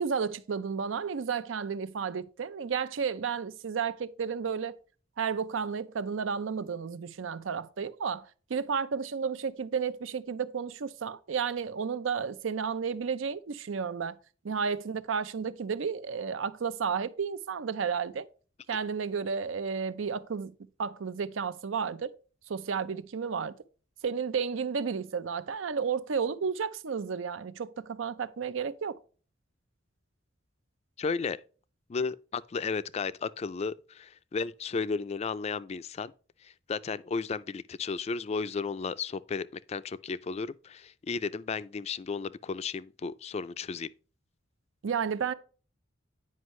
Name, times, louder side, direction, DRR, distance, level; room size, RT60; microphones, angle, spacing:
voice 1, 0.0-4.8 5.2-14.2 14.4-18.3 18.7-20.5 20.8-22.1 22.5-23.5 24.0-29.0 44.8-45.3, right 6 dB, 85° right, 0.5 m, -32 dB
voice 2, 31.0-31.4 31.9-36.1 36.4-43.9, left 5 dB, 35° left, 0.3 m, -34 dB
9.6 x 5.4 x 3.1 m
head